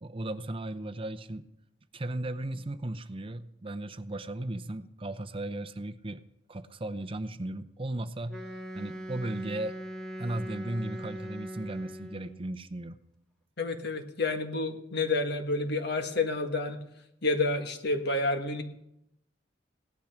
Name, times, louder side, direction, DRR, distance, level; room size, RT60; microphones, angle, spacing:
voice 1, 0.0-1.4 1.9-6.2 6.5-9.8 10.2-13.0, right 1 dB, 30° right, 10 dB, 0.7 m, -36 dB
Wind instrument woodwind instrument, 8.3-12.4, equal, 5° left, 1.3 m, -40 dB
voice 2, 13.6-16.8 17.2-18.6, left 3 dB, 60° left, 6 dB, 1.6 m, -29 dB
17.0 x 12.0 x 5.8 m, 0.83 s
head